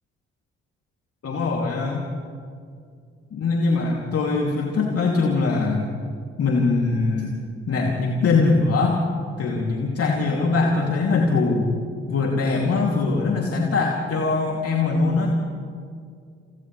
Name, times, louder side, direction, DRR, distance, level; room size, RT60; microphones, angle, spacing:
voice 1, 1.2-2.1 3.3-5.9 6.4-7.4 7.7-9.0 9.4-11.7 12.1-15.3, left 3 dB, 50° left, -1 dB, 2.9 m, -22 dB
30.0 x 30.0 x 3.4 m, 2.2 s
figure-of-eight pair, 40°, 31 cm